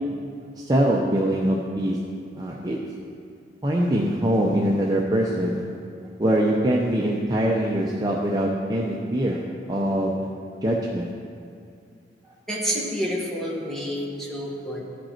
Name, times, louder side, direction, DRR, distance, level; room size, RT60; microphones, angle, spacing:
voice 1, 0.6-2.0 2.3-2.8 3.6-5.6 6.2-9.4 9.7-10.1 10.6-11.1, right 1 dB, 20° right, -2 dB, 0.6 m, -23 dB
voice 2, 12.5-14.8, equal, ahead, -4 dB, 1.5 m, -28 dB
15.0 x 5.2 x 4.4 m, 2.4 s
head